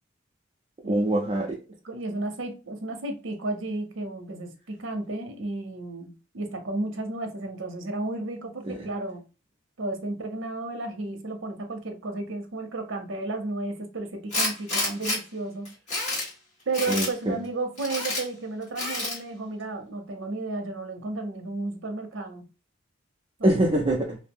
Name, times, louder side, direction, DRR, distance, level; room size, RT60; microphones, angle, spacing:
voice 1, 0.9-1.6 8.6-8.9 16.9-17.4 23.4-24.2, right 1 dB, 30° right, 0.5 m, -24 dB
voice 2, 1.8-9.3 9.8-15.7 16.7-22.5 23.4-23.6, right 2 dB, 80° right, 0.6 m, -33 dB
Tools, 14.3-15.2 15.7-16.3 16.7-17.1 17.8-18.2 18.8-19.2, left 2 dB, 40° left, 1.5 m, -28 dB
2.6 x 2.0 x 3.4 m
head